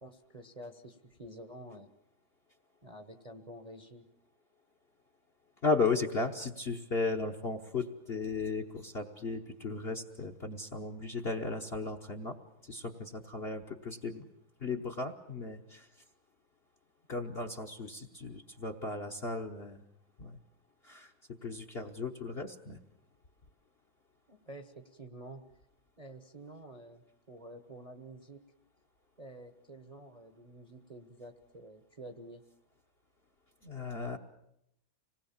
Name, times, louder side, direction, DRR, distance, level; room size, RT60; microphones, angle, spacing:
voice 1, 0.0-1.9 2.8-4.1 24.3-25.4 26.0-28.4 29.2-32.4, right 1 dB, 25° right, 7 dB, 0.9 m, -49 dB
voice 2, 5.6-12.4 12.6-14.3 14.6-15.9 17.1-19.8 20.2-20.4 20.8-21.1 21.4-22.8 33.6-34.2, left 3 dB, 40° left, 8 dB, 1.0 m, -35 dB
26.0 x 19.5 x 7.2 m, 0.78 s
omnidirectional pair, 2.1 m